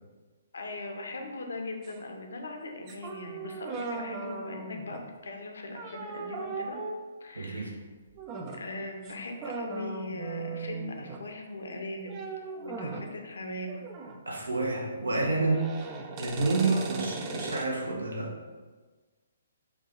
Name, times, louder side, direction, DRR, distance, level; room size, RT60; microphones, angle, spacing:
voice 1, 0.5-5.0 5.2-6.8 7.2-7.7 8.6-12.1 12.6-13.9 16.6-17.0, left 2 dB, 60° left, 3 dB, 0.6 m, -39 dB
sound 1, 1.8-2.0 2.9-5.1 5.7-7.1 8.1-8.7 9.0-9.1 9.4-11.3 12.0-13.1 13.7-14.2 14.5-17.6, right 4 dB, 25° right, 0.3 m, -38 dB
voice 2, 7.4-7.7 14.3-15.7 16.2-18.3, right 3 dB, 70° right, 0 dB, 0.8 m, -29 dB
4.6 x 2.4 x 3.6 m, 1.4 s
figure-of-eight pair, 130°, 0 cm